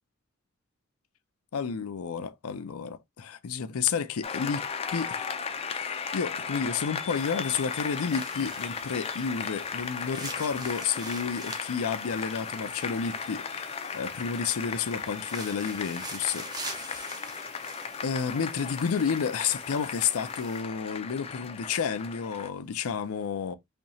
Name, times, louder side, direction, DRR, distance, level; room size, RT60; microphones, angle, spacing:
voice 1, 1.5-4.6 4.9-5.3 5.7-17.2 18.0-23.5, left 6 dB, 85° left, 0.5 m, -31 dB
Applause, 4.2-22.5, left 6 dB, 30° left, 0.4 m, -36 dB
sound 1, 7.2-20.6, right 2 dB, 20° right, 0.6 m, -46 dB
4.4 x 2.8 x 2.7 m
head